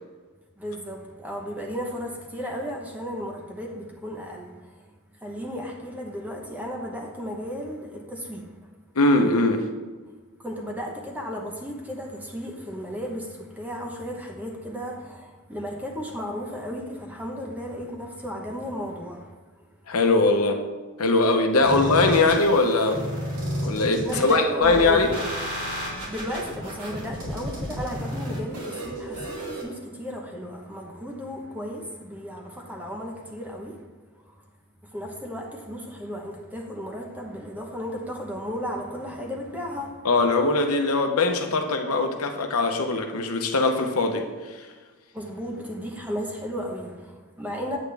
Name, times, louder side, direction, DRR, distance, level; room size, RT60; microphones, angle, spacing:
voice 1, 0.6-4.9 5.2-8.6 10.4-19.3 19.6-19.7 21.6-21.8 24.0-25.3 26.1-33.8 34.2-34.4 34.8-40.0 45.1-47.8, equal, 5° right, 1 dB, 0.9 m, -34 dB
voice 2, 9.0-9.7 19.9-20.6 21.0-23.0 23.6-25.1 40.0-44.3, left 3 dB, 85° left, 5 dB, 0.9 m, -21 dB
sound 1, 21.6-29.6, equal, 85° right, 2.9 m, -32 dB
8.7 x 8.2 x 3.4 m, 1.4 s
head